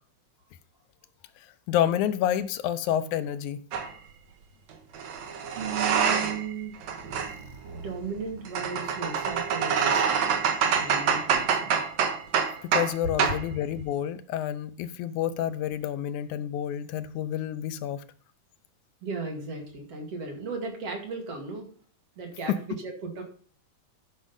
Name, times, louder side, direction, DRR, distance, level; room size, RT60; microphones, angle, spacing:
voice 1, 1.7-3.6 12.6-18.0 22.5-22.8, left 10 dB, 80° left, 2.0 m, -29 dB
sound 1, 3.7-3.9 4.9-6.5 6.8-12.9 13.2-13.4, right 6 dB, 70° right, 2.6 m, -26 dB
voice 2, 5.6-6.7 7.6-11.8 19.0-21.7 22.2-23.2, right 4 dB, 55° right, 3.1 m, -36 dB
12.0 x 6.2 x 5.3 m
omnidirectional pair, 3.5 m